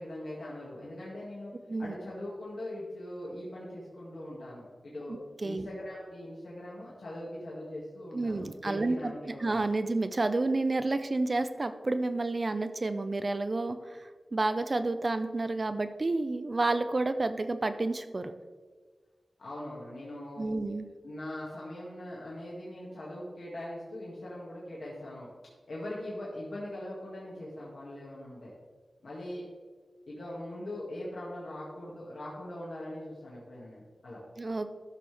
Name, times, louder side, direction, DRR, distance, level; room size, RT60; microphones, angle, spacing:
voice 1, 0.0-1.5 1.8-5.2 5.4-9.5 19.4-20.5 21.0-25.3 25.7-28.5 29.0-29.5 30.1-34.2, left 1 dB, 75° left, -7 dB, 2.1 m, -41 dB
voice 2, 8.1-18.3 20.4-20.9 34.4-34.7, right 2 dB, 45° right, 10 dB, 0.6 m, -30 dB
13.0 x 6.0 x 3.5 m, 1.5 s
wide cardioid pair, 70°, 0 cm